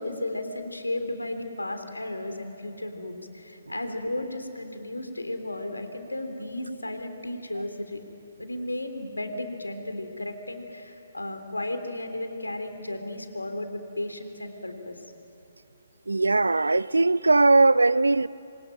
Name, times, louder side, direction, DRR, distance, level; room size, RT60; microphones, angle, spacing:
voice 1, 0.0-8.0 8.4-15.0, left 1 dB, 85° left, 3.4 m, -34 dB
voice 2, 16.1-18.3, right 3 dB, 80° right, 0.6 m, -20 dB
28.0 x 23.5 x 9.1 m
figure-of-eight pair, 135°, 0 cm